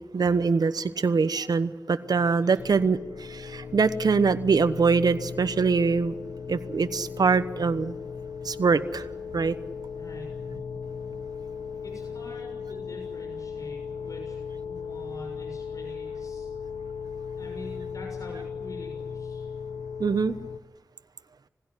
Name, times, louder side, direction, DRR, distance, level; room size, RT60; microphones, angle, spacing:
voice 1, 0.0-6.1 6.5-7.9 8.4-9.1 9.3-9.6 20.0-20.4, right 5 dB, 70° right, 12 dB, 1.1 m, -23 dB
voice 2, 2.4-2.9 10.0-10.4 11.8-14.4 14.6-16.5 17.0-19.5, left 1 dB, 55° left, 1 dB, 6.6 m, -45 dB
sound 1, 2.6-20.6, left 6 dB, 75° left, 1.2 m, -37 dB
21.5 x 16.0 x 9.9 m, 1.1 s
cardioid pair, 50°, 7 cm